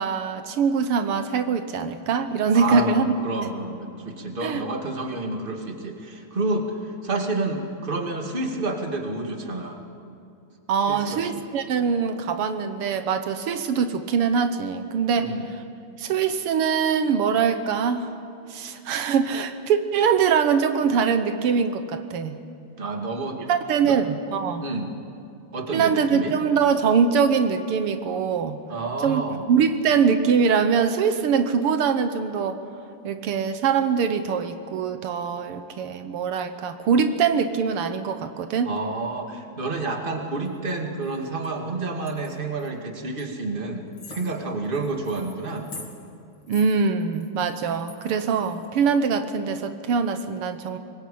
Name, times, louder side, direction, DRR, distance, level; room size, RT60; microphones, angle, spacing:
voice 1, 0.0-3.1 4.4-4.7 10.7-15.3 16.0-18.1 18.5-22.4 23.5-24.7 25.7-28.6 29.0-32.6 33.0-38.7 46.5-50.8, right 6 dB, 85° right, 9 dB, 2.0 m, -23 dB
voice 2, 2.5-9.8 10.9-11.2 15.2-15.4 22.8-23.5 23.8-24.0 24.6-24.9 25.5-26.4 28.7-29.4 38.7-45.7, right 3 dB, 25° right, 3 dB, 2.2 m, -29 dB
sound 1, 40.4-40.7 41.0-41.5 42.0-42.7 43.2-43.3 43.6-43.7 43.9-48.8, left 3 dB, 55° left, 3.4 m, -45 dB
24.0 x 21.0 x 8.6 m, 2.6 s
omnidirectional pair, 2.4 m